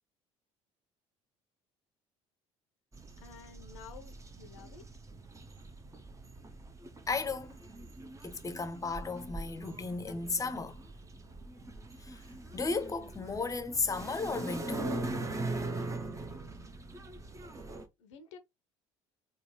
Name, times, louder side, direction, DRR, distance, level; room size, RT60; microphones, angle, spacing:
sound 1, 2.9-17.9, right 2 dB, 20° right, 0.7 m, -42 dB
voice 1, 3.2-4.9 18.0-18.4, left 7 dB, 75° left, 0.5 m, -51 dB
voice 2, 7.1-7.6 8.2-10.8 12.0-12.2 12.5-14.9, left 4 dB, 20° left, 0.7 m, -34 dB
3.9 x 2.3 x 3.1 m
figure-of-eight pair, 55°, 16 cm